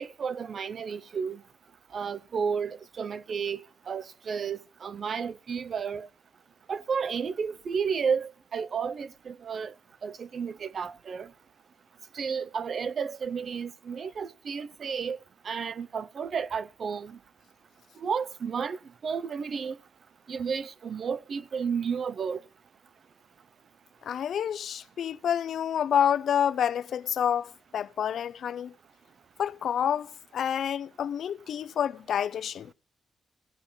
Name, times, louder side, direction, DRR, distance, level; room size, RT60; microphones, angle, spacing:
voice 1, 0.0-1.4 1.9-3.6 3.9-6.1 6.7-9.7 10.0-11.3 12.1-15.2 15.4-17.2 18.0-19.8 20.3-22.4, right 6 dB, 50° right, 0.6 m, -32 dB
voice 2, 24.0-28.7 29.4-32.7, left 9 dB, 70° left, 0.6 m, -28 dB
16.5 x 8.6 x 7.2 m
wide cardioid pair, 155°, 0 cm